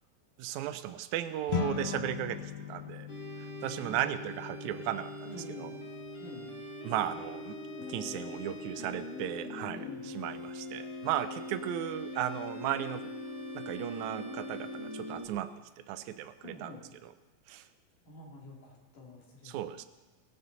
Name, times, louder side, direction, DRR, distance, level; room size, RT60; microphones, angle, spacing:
voice 1, 0.4-3.1 3.4-5.7 6.8-13.1 13.5-16.7 17.0-17.1 17.5-17.7 19.4-19.8, right 12 dB, 85° right, 10 dB, 1.6 m, -36 dB
sound 1, 1.5-11.0, left 9 dB, 80° left, 2.6 m, -42 dB
sound 2, 3.1-15.3, left 1 dB, 40° left, 1.0 m, -42 dB
voice 2, 5.2-5.8 6.2-6.5 9.7-10.1 16.4-16.9 18.1-19.7, left 1 dB, 60° left, -2 dB, 4.0 m, -47 dB
17.5 x 14.5 x 4.0 m, 1.2 s
omnidirectional pair, 4.1 m